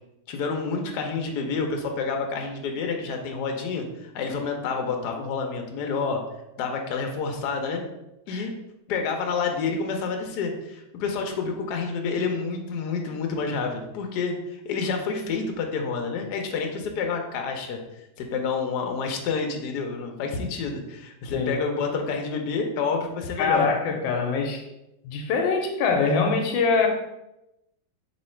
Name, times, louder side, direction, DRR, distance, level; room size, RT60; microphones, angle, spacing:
voice 1, 0.3-6.2 6.6-7.8 8.3-8.5 8.9-17.8 18.2-23.7, left 5 dB, 70° left, 1.1 m, -28 dB
voice 2, 23.4-24.6 25.0-26.9, left 4 dB, 85° left, 1.4 m, -23 dB
3.1 x 3.1 x 4.2 m
omnidirectional pair, 2.0 m